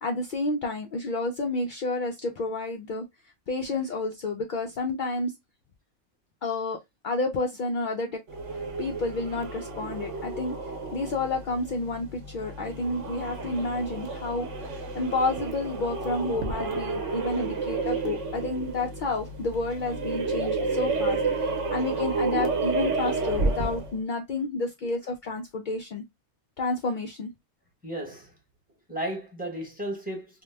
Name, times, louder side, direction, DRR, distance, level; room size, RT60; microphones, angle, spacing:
voice 1, 0.0-3.0 3.5-5.3 6.4-6.8 7.0-8.1 8.8-10.5 10.9-26.0 26.6-27.3, left 2 dB, 75° left, 0.4 m, -30 dB
sound 1, 8.3-24.0, right 3 dB, 65° right, 1.0 m, -31 dB
voice 2, 27.8-28.3 28.9-30.4, right 1 dB, 10° right, 0.8 m, -35 dB
2.8 x 2.1 x 3.2 m
omnidirectional pair, 1.4 m